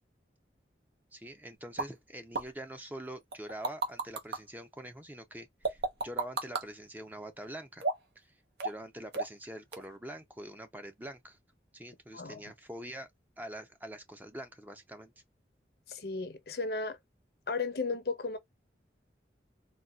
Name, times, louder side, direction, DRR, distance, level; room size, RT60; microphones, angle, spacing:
voice 1, 1.1-7.8 8.2-8.3 8.6-11.4 11.7-13.1 13.4-15.1, right 1 dB, 10° right, 0.6 m, -45 dB
sound 1, 1.8-1.9 2.3-2.5 3.3-4.4 5.6-6.7 7.8-8.2 8.6-8.9 9.1-9.4 9.7-9.8, right 3 dB, 70° right, 1.0 m, -32 dB
voice 2, 15.9-17.0 17.5-18.4, left 4 dB, 60° left, 0.7 m, -34 dB
4.0 x 2.3 x 2.3 m
head